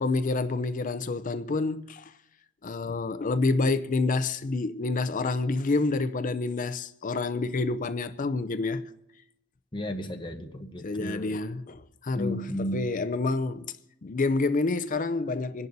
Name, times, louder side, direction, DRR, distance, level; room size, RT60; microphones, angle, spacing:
voice 1, 0.0-2.1 2.6-8.9 10.8-13.8 14.0-15.7, left 3 dB, 35° left, 0.4 m, -28 dB
voice 2, 9.7-11.4 12.2-12.8, left 1 dB, 20° left, 0.9 m, -33 dB
26.5 x 11.0 x 2.7 m
head